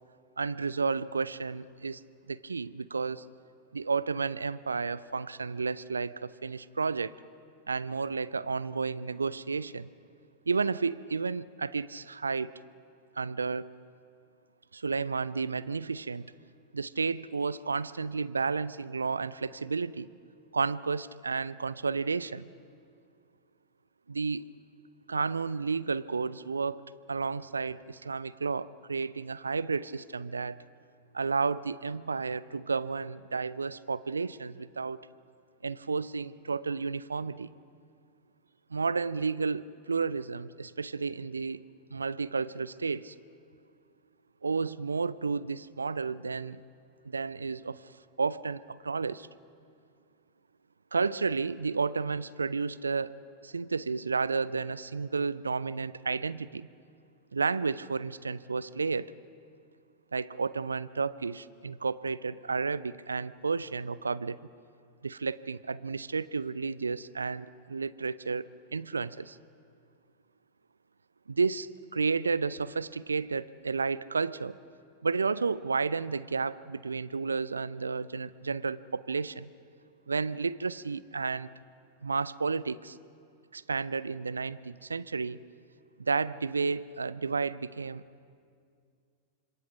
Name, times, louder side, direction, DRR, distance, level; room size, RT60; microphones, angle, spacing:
voice 1, 0.4-2.0 2.3-3.2 3.7-7.1 7.7-9.9 10.5-12.5 13.2-13.7 14.7-16.3 16.7-20.1 20.5-22.5 24.1-24.4 25.1-26.8 27.1-30.6 31.1-35.0 35.6-37.5 38.7-41.6 41.9-43.2 44.4-46.6 47.0-47.9 48.2-49.3 50.9-53.2 53.4-56.7 57.3-59.1 60.1-64.4 65.0-69.4 71.3-74.6 75.0-79.5 80.1-81.5 82.0-83.0 83.5-85.4 86.0-88.0, right 4 dB, 75° right, 19 dB, 0.5 m, -32 dB
28.0 x 26.0 x 5.2 m, 2.3 s
figure-of-eight pair, 90°, 0 cm